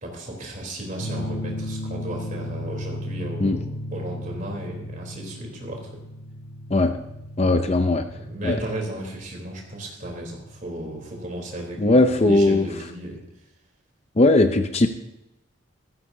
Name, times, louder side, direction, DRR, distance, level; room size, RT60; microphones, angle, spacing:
voice 1, 0.0-6.0 8.1-13.2, right 1 dB, 40° right, 0 dB, 3.6 m, -34 dB
sound 1, 1.0-12.2, left 1 dB, 70° left, 2.0 m, -36 dB
voice 2, 7.4-8.0 8.4-8.6 11.8-12.7 14.2-14.9, left 2 dB, 30° left, 8 dB, 0.6 m, -18 dB
15.0 x 14.5 x 2.8 m, 0.88 s
head